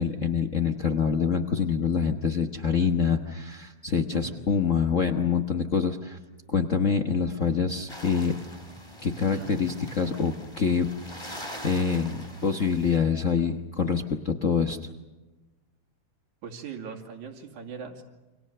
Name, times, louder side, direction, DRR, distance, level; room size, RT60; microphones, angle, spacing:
voice 1, 0.0-6.2 6.5-8.3 9.0-14.8, left 6 dB, 85° left, 5 dB, 0.6 m, -26 dB
sound 1, 7.9-13.0, equal, 10° left, 3.4 m, -43 dB
voice 2, 9.3-9.6 16.4-18.0, right 6 dB, 75° right, 1 dB, 3.9 m, -39 dB
29.0 x 26.0 x 6.7 m, 1.1 s
omnidirectional pair, 3.4 m